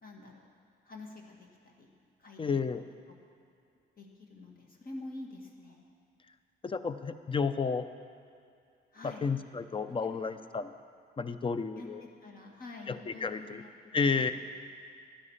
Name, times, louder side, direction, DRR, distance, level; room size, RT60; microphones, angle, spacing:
voice 1, 0.0-0.4 0.9-1.9 2.2-2.6 4.0-5.8 8.9-9.3 10.0-10.1 11.7-13.7 14.2-14.3, left 2 dB, 45° left, 0 dB, 2.0 m, -47 dB
voice 2, 2.4-2.8 6.6-7.9 9.0-10.7 11.2-12.0 12.9-13.6 13.9-14.3, left 5 dB, 25° left, 11 dB, 0.6 m, -31 dB
12.0 x 10.0 x 5.7 m, 2.4 s
cardioid pair, 90°, 20 cm